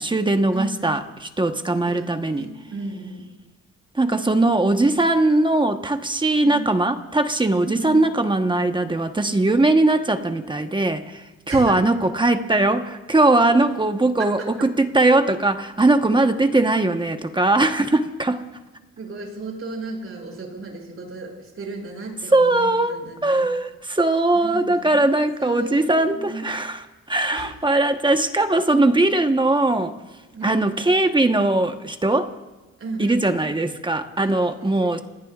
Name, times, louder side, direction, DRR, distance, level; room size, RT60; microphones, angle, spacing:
voice 1, 0.0-2.5 3.9-18.4 22.3-29.9 30.4-32.3 33.0-35.0, right 2 dB, 15° right, 6 dB, 1.2 m, -20 dB
voice 2, 0.5-1.0 1.9-3.3 6.4-6.7 7.6-8.0 11.5-11.9 13.5-13.7 14.2-14.5 19.0-23.5 24.3-25.1 25.4-26.5 27.3-27.5 30.3-30.7 32.8-33.3 34.2-35.0, right 3 dB, 45° right, 0 dB, 6.9 m, -35 dB
27.5 x 19.0 x 2.5 m, 1.1 s
cardioid pair, 90°, 30 cm